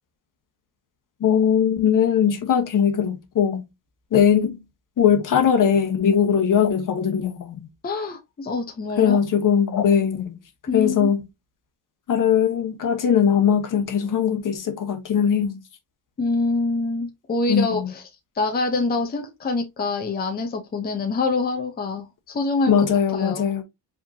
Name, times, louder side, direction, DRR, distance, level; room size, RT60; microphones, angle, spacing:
voice 1, 1.2-3.6 4.1-4.6 5.0-7.7 9.0-10.4 10.7-11.2 12.1-15.6 17.5-17.9 22.7-23.6, left 8 dB, 45° left, 1.2 m, -20 dB
voice 2, 7.8-9.2 10.7-11.1 16.2-18.0 18.3-22.7 23.1-23.4, left 3 dB, 20° left, 0.8 m, -25 dB
5.0 x 3.6 x 2.8 m
cardioid pair, 115°, 43 cm